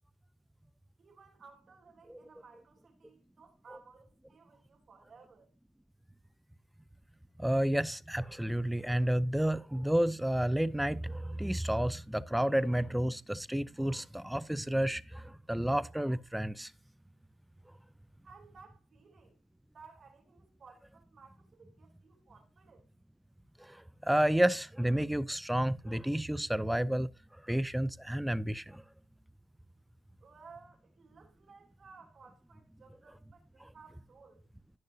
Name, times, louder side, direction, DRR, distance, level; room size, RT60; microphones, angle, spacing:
voice 1, 1.0-5.5 18.2-19.4 19.7-22.9 30.2-34.4, right 5 dB, 45° right, 3.3 m, -57 dB
voice 2, 7.4-16.7 23.6-27.1 27.5-28.8, right 1 dB, 5° right, 0.5 m, -31 dB
15.5 x 6.6 x 2.8 m
cardioid pair, 90°, 0 cm